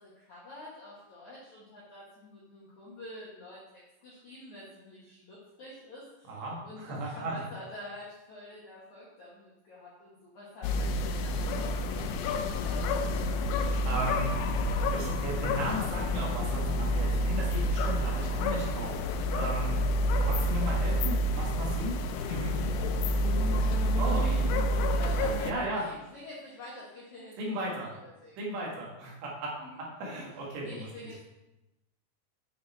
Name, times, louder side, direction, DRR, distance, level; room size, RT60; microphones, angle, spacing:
voice 1, 0.0-13.2 23.0-24.6 25.0-27.6 27.9-28.3 29.6-29.8 30.6-31.2, left 1 dB, 60° left, -7 dB, 2.0 m, -46 dB
voice 2, 6.3-7.4 13.5-14.3 14.9-19.0 19.3-22.5 24.0-24.3 25.4-25.8 27.4-27.9 28.4-29.5 29.8-30.9, right 1 dB, 65° right, -3 dB, 3.5 m, -36 dB
sound 1, 10.6-25.5, equal, 85° left, 2.9 m, -28 dB
9.1 x 6.5 x 4.2 m, 0.96 s
omnidirectional pair, 6.0 m